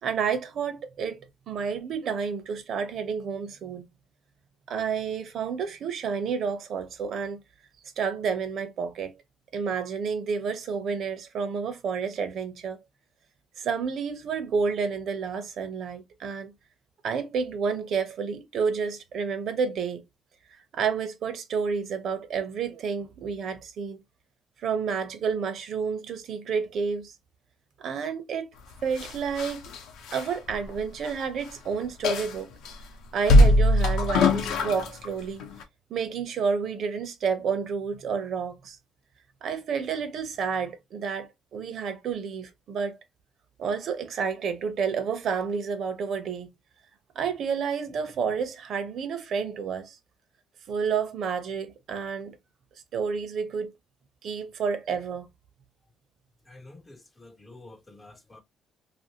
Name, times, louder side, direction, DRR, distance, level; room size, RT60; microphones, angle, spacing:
voice 1, 0.0-1.2 1.5-3.9 4.7-7.4 8.0-9.1 9.5-12.8 13.6-16.5 17.0-20.0 20.7-24.0 24.6-27.1 27.8-28.5 28.8-29.6 30.1-32.5 33.1-35.5 35.9-38.8 39.4-43.0 43.6-46.5 47.2-50.0 50.7-52.4 52.9-53.7 54.2-55.3, right 6 dB, 50° right, 0.6 m, -30 dB
sound 1, 28.9-31.2 31.5-31.6 32.0-32.7 33.2-35.1 35.4-35.6, left 1 dB, 80° left, 0.7 m, -21 dB
voice 2, 56.5-58.4, left 2 dB, 15° left, 0.4 m, -49 dB
2.7 x 2.5 x 2.8 m
cardioid pair, 165°, 0 cm